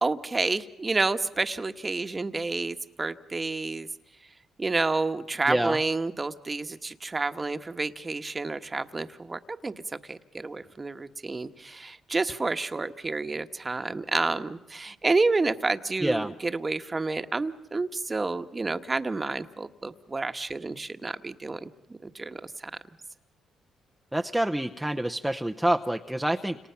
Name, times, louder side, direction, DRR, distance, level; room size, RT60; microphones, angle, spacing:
voice 1, 0.0-3.9 4.6-9.7 10.1-21.7 22.0-22.7, right 3 dB, 25° right, 9 dB, 1.3 m, -29 dB
voice 2, 5.5-5.8 16.0-16.3 24.1-26.6, right 1 dB, 5° right, 5 dB, 0.8 m, -27 dB
29.5 x 27.5 x 5.8 m, 0.93 s
cardioid pair, 90°, 0 cm